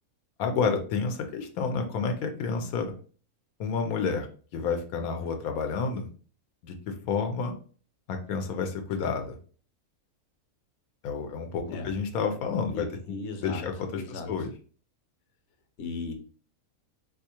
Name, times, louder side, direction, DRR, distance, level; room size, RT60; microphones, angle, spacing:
voice 1, 0.4-2.9 3.6-4.3 4.5-6.1 6.6-7.5 8.1-9.4 11.0-12.9 13.4-14.5, left 5 dB, 85° left, 5 dB, 1.0 m, -30 dB
voice 2, 12.7-14.5 15.8-16.1, left 3 dB, 60° left, 5 dB, 0.9 m, -37 dB
3.5 x 2.7 x 2.8 m, 0.42 s
omnidirectional pair, 1.5 m